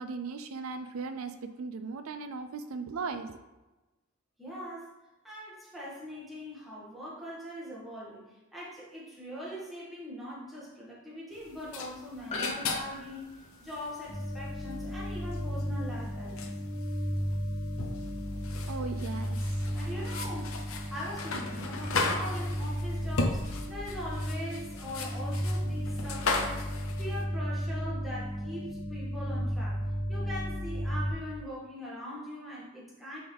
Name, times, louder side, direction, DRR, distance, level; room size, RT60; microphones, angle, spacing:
voice 1, 0.0-3.3 18.7-19.6, right 4 dB, 70° right, 9 dB, 0.4 m, -37 dB
voice 2, 4.4-4.9 5.2-16.5 19.7-20.6 20.9-29.8 30.1-33.2, equal, ahead, -8 dB, 1.8 m, -41 dB
sound 1, 11.4-27.2, left 3 dB, 70° left, 0.8 m, -37 dB
Piano, 12.3-16.9 17.2-17.3, left 1 dB, 30° left, 0.5 m, -47 dB
sound 2, 14.1-31.1, equal, 25° right, 1.9 m, -34 dB
9.3 x 3.9 x 3.4 m, 1.1 s
head